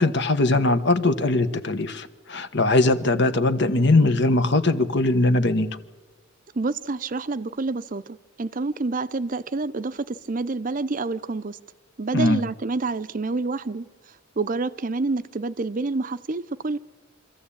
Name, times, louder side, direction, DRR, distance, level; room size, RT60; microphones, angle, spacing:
voice 1, 0.0-5.7 12.1-12.4, left 2 dB, 55° left, 11 dB, 1.2 m, -20 dB
voice 2, 6.5-11.6 12.0-13.9 14.4-16.8, right 3 dB, 40° right, 14 dB, 0.6 m, -28 dB
24.5 x 14.5 x 8.7 m, 1.3 s
head